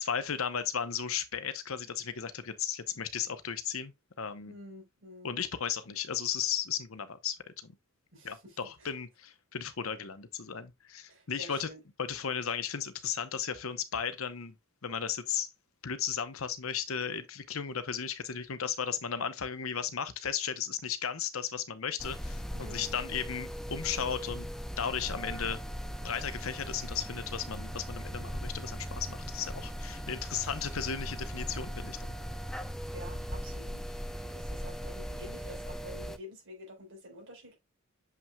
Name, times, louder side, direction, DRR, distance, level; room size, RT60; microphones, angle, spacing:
voice 1, 0.0-4.5 5.2-7.7 8.2-11.7 12.0-14.5 14.8-15.5 15.8-24.5 24.8-25.6 26.0-32.0, left 7 dB, 70° left, 0.9 m, -35 dB
voice 2, 4.5-5.3 8.1-8.9 11.1-11.8 22.5-23.0 29.9-30.0 32.9-33.8 34.2-37.5, equal, 65° right, 4.2 m, -49 dB
sound 1, 22.0-36.2, equal, ahead, 0.6 m, -39 dB
7.0 x 5.9 x 2.3 m
head